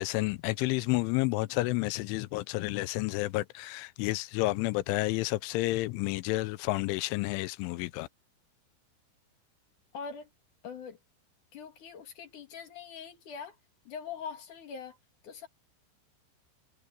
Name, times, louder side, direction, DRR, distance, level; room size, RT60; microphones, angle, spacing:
voice 1, 0.0-8.1, left 19 dB, 85° left, 3.1 m, -30 dB
voice 2, 9.9-10.3 10.6-11.0 11.5-13.6 13.8-15.0 15.2-15.5, left 6 dB, 50° left, 2.9 m, -42 dB
omnidirectional pair, 5.5 m